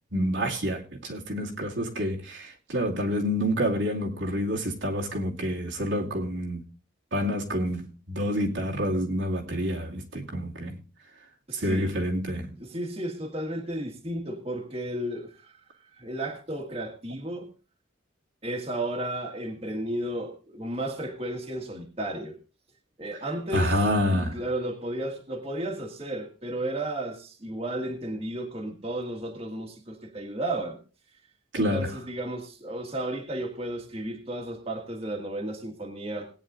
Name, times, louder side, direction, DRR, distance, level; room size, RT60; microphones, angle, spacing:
voice 1, 0.1-6.6 7.1-10.8 11.5-12.6 23.5-24.4 31.5-31.9, equal, 75° right, 2.4 m, -28 dB
voice 2, 11.5-11.9 12.6-15.6 15.9-17.5 18.4-22.4 23.0-23.8 24.1-30.8 31.5-36.3, right 1 dB, 30° right, 1.7 m, -33 dB
19.0 x 9.5 x 2.6 m
head